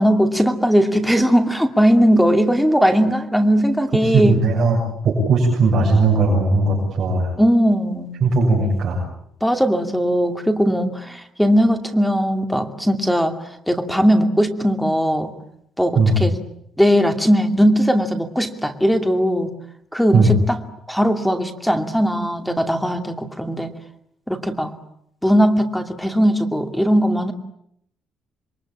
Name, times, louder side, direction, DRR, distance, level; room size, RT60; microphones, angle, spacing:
voice 1, 0.0-4.4 7.4-8.2 9.4-13.4 13.7-15.3 15.8-16.3 16.8-19.5 19.9-20.6 20.9-23.7 24.3-24.7 25.2-27.3, equal, ahead, 5 dB, 2.5 m, -18 dB
voice 2, 4.0-4.8 5.0-7.3 8.2-9.0 16.0-16.2 20.1-20.3, right 3 dB, 45° right, -2 dB, 7.3 m, -17 dB
28.0 x 23.0 x 8.8 m, 0.74 s
cardioid pair, 140°, 0 cm